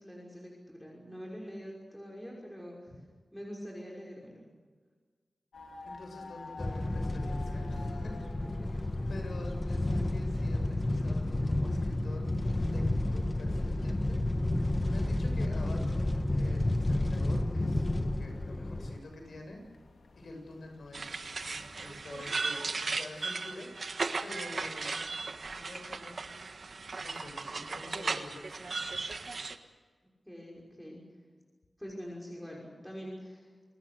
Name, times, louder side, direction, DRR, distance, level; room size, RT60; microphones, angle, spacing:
voice 1, 0.0-2.9 3.3-4.4 8.4-8.7 9.7-9.8 30.3-31.0 31.8-33.5, equal, 5° left, -3 dB, 5.9 m, -44 dB
sound 1, 5.5-22.3, left 3 dB, 90° left, 3.1 m, -53 dB
voice 2, 5.8-8.2 8.8-12.3 12.7-14.2 14.9-19.6 20.2-21.1 21.4-23.9 24.2-24.9 25.5-26.2 27.0-28.8, left 2 dB, 75° left, 3 dB, 7.3 m, -47 dB
sound 2, 6.6-19.0, left 1 dB, 25° left, 1.7 m, -31 dB
sound 3, 20.9-29.6, right 4 dB, 60° right, 1.5 m, -36 dB
28.5 x 21.5 x 6.7 m, 1.5 s
wide cardioid pair, 80°, 0 cm